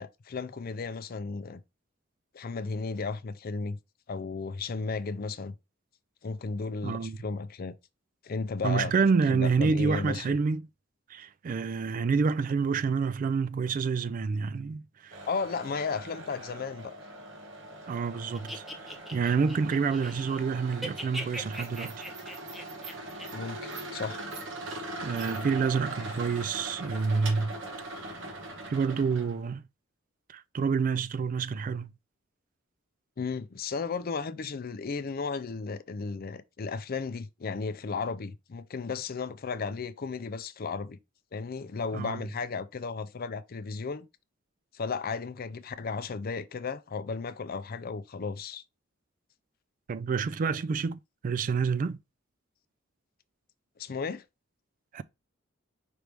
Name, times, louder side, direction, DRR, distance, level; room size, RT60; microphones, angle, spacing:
voice 1, 0.0-1.6 2.3-3.8 4.1-5.6 6.2-7.8 8.2-8.9 9.3-10.3 15.3-16.9 23.3-24.2 33.2-41.0 41.3-44.1 44.7-48.6 53.8-54.2, left 4 dB, 50° left, 0.5 m, -34 dB
voice 2, 6.8-7.2 8.6-10.7 11.1-15.2 17.9-22.0 25.0-27.6 28.0-28.1 28.7-29.6 30.3-31.9 41.9-42.2 49.9-52.0 54.9-55.0, right 5 dB, 40° right, 0.3 m, -28 dB
sound 1, 15.1-29.4, right 2 dB, 65° right, 1.2 m, -41 dB
sound 2, 18.3-20.4 20.7-23.3, equal, ahead, 0.8 m, -40 dB
5.2 x 3.1 x 3.4 m
head